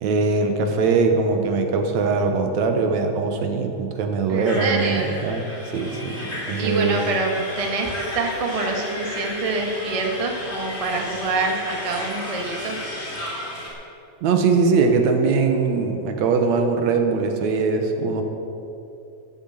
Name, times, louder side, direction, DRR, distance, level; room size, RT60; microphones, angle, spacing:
voice 1, 0.0-7.0 14.2-18.2, right 4 dB, 75° right, 5 dB, 2.3 m, -21 dB
voice 2, 4.3-5.1 6.6-12.8, right 3 dB, 35° right, 1 dB, 0.5 m, -26 dB
sound 1, 4.5-13.7, left 1 dB, 20° left, 2.8 m, -33 dB
13.5 x 7.9 x 8.0 m, 2.8 s
omnidirectional pair, 3.3 m